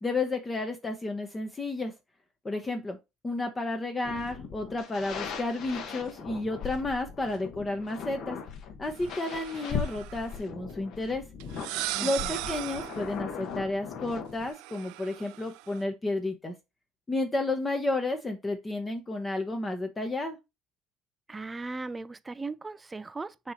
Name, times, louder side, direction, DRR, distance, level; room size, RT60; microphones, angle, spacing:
voice 1, 0.0-1.9 2.4-3.0 3.2-8.4 8.8-11.2 12.0-16.5 17.1-20.4, left 2 dB, 15° left, 0.8 m, -31 dB
sound 1, 4.0-14.5, left 6 dB, 50° left, 1.3 m, -39 dB
sound 2, 9.0-10.3 11.4-13.1 14.5-15.8, right 18 dB, 80° right, 0.3 m, -37 dB
voice 2, 11.9-12.4 21.3-23.5, right 3 dB, 15° right, 0.4 m, -38 dB
6.8 x 2.9 x 5.0 m
cardioid pair, 140°, 0 cm